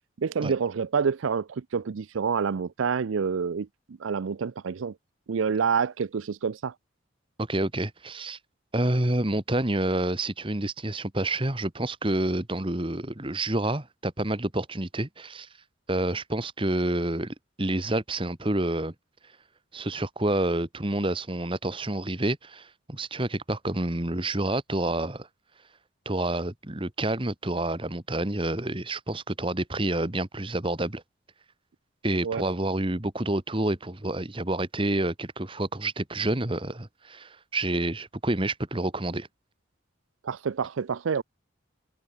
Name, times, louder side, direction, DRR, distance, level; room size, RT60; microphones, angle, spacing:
voice 1, 0.2-3.7 4.0-4.9 5.3-6.7 32.2-32.4 40.2-41.2, right 6 dB, 80° right, 0.5 m, -27 dB
voice 2, 7.4-8.4 8.7-15.5 15.9-18.9 19.7-25.3 26.0-31.0 32.0-39.3, right 1 dB, 25° right, 1.5 m, -28 dB
head